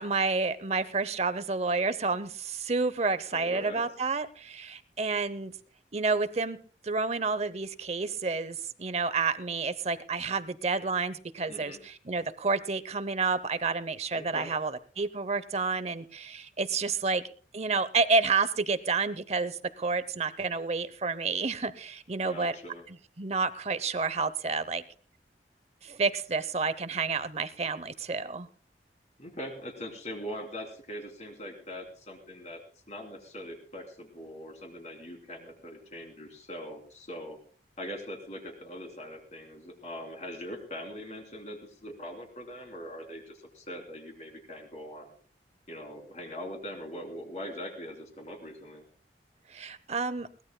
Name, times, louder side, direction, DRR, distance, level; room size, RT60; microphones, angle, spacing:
voice 1, 0.0-5.5 5.9-6.6 6.8-17.2 17.5-22.5 22.9-24.8 25.8-28.5 49.5-50.3, right 4 dB, 35° right, 15 dB, 0.7 m, -30 dB
voice 2, 3.3-3.8 11.5-11.8 14.1-14.5 22.2-22.8 29.2-32.6 32.9-37.4 37.8-45.1 45.7-48.8, equal, 40° left, 3 dB, 3.1 m, -42 dB
22.0 x 18.0 x 2.2 m, 0.42 s
head